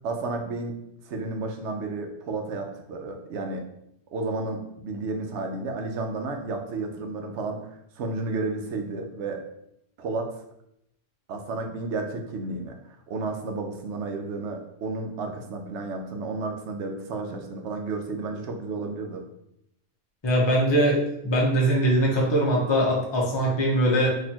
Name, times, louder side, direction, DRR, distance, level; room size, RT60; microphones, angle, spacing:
voice 1, 0.0-0.8 1.1-3.6 4.1-9.4 10.0-10.3 11.3-19.3, right 3 dB, 80° right, 4 dB, 0.9 m, -32 dB
voice 2, 20.2-21.0 21.2-24.1, right 1 dB, 25° left, -3 dB, 0.8 m, -21 dB
4.0 x 2.7 x 2.8 m, 0.78 s
omnidirectional pair, 1.2 m